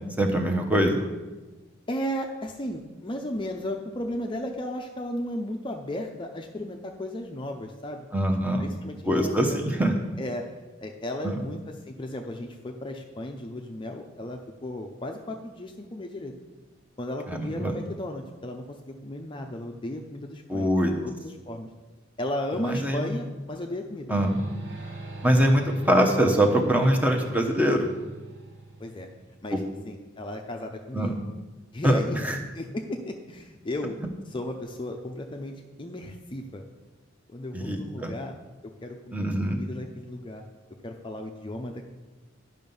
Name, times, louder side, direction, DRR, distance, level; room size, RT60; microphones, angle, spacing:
voice 1, 0.2-1.0 8.1-8.6 9.1-9.9 11.2-11.4 17.3-17.7 20.5-20.9 22.6-23.1 24.1-24.3 25.2-27.9 30.9-31.1 31.8-32.4 37.5-38.1 39.1-39.6, equal, 10° right, 3 dB, 0.9 m, -23 dB
voice 2, 1.9-8.1 8.6-9.7 10.2-16.3 17.0-20.7 21.0-21.7 22.2-24.1 28.8-29.1 29.4-31.1 31.7-32.2 32.5-34.0 34.3-36.6 37.3-38.3 38.8-40.4 40.8-41.8, left 1 dB, 25° left, 3 dB, 0.6 m, -35 dB
sound 1, 24.1-29.6, right 2 dB, 60° right, 1.7 m, -40 dB
10.5 x 5.6 x 5.4 m, 1.2 s
head